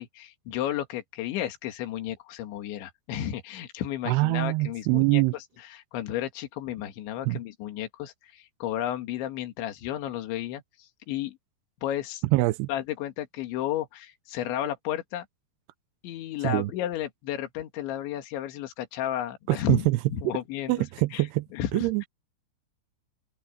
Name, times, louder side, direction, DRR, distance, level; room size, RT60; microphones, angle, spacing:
voice 1, 0.0-11.4 11.8-12.2 12.7-15.3 16.0-20.9 21.1-21.3 21.5-22.1, left 11 dB, 75° left, 4.2 m, -33 dB
voice 2, 4.1-5.4 7.3-7.4 12.3-12.7 16.4-16.7 19.5-20.0 20.7-21.5 21.7-22.0, right 20 dB, 85° right, 2.4 m, -24 dB
open air
omnidirectional pair, 5.4 m